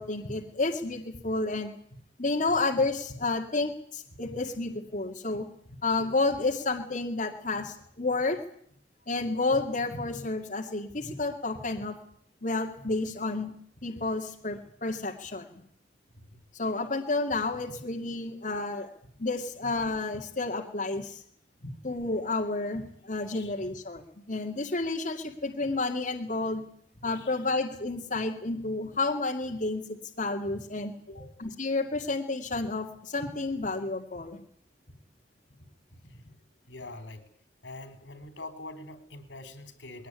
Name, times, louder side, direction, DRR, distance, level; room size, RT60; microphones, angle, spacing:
voice 1, 0.0-1.7 2.2-5.5 5.8-8.4 9.1-12.0 12.4-13.5 13.8-15.5 16.5-18.9 19.2-21.2 21.6-24.0 24.3-26.6 27.0-30.9 31.4-34.4, left 3 dB, 45° left, 1 dB, 2.3 m, -30 dB
voice 2, 36.6-37.3 37.6-40.1, left 2 dB, 85° left, 11 dB, 3.8 m, -44 dB
21.0 x 18.0 x 9.7 m, 0.65 s
head